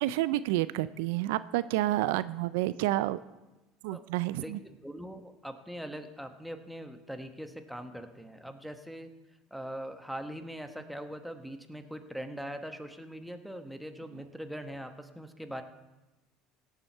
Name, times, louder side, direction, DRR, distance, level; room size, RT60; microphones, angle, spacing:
voice 1, 0.0-3.2 3.8-4.6, right 16 dB, 80° right, 15 dB, 0.3 m, -29 dB
voice 2, 4.3-9.1 9.5-15.6, equal, ahead, 6 dB, 1.1 m, -42 dB
17.0 x 7.3 x 4.4 m, 1.1 s
supercardioid pair, 90°, 0 cm